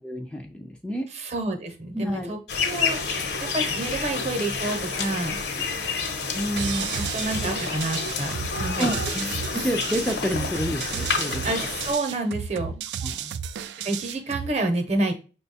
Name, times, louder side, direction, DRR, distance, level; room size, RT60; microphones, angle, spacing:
voice 1, 0.0-1.1 1.9-2.4 5.6-5.7 7.4-7.5 8.8-9.0 9.5-11.5 13.0-13.4, equal, 5° left, 2 dB, 0.3 m, -29 dB
voice 2, 1.1-3.0 3.5-6.0 6.3-8.9 9.1-9.3 10.4-10.5 11.4-12.7 13.8-15.1, right 2 dB, 35° right, 5 dB, 0.8 m, -29 dB
sound 1, 2.5-11.9, left 4 dB, 75° left, 0.9 m, -29 dB
sound 2, 6.6-14.6, right 8 dB, 80° right, 0.3 m, -33 dB
5.6 x 2.3 x 4.0 m, 0.34 s
head